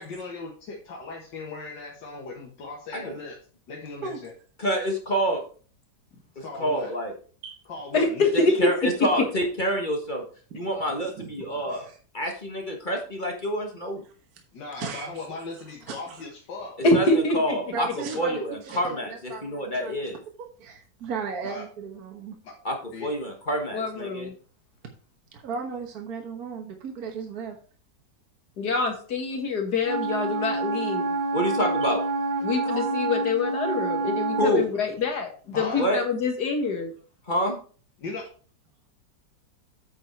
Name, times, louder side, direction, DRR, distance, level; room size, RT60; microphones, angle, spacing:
voice 1, 0.0-3.4 3.7-4.3 6.4-6.9 7.7-8.6 14.5-16.8 21.4-21.6 22.4-22.5 22.9-23.1 35.5-35.9 38.0-38.2, left 3 dB, 90° left, -2 dB, 2.3 m, -37 dB
voice 2, 4.6-5.4 6.4-7.1 8.3-10.2 10.5-11.9 12.1-14.0 16.9-17.9 18.2-20.2 22.6-22.7 23.0-24.3 31.3-32.0 34.4-34.6 35.7-36.0 37.3-37.6, equal, 30° left, 2 dB, 1.4 m, -27 dB
voice 3, 7.9-8.7 16.8-17.6 23.7-24.3 28.6-31.1 32.4-35.3 35.6-36.9, left 3 dB, 65° left, 3 dB, 2.3 m, -25 dB
voice 4, 11.0-12.0 14.7-15.2 15.8-16.3 17.7-19.9 20.4-22.4 25.3-27.6 32.6-33.2, right 5 dB, 60° right, 3 dB, 1.7 m, -36 dB
Wind instrument woodwind instrument, 29.8-34.6, right 3 dB, 85° right, 1.9 m, -27 dB
8.8 x 5.4 x 4.5 m, 0.41 s
omnidirectional pair, 1.9 m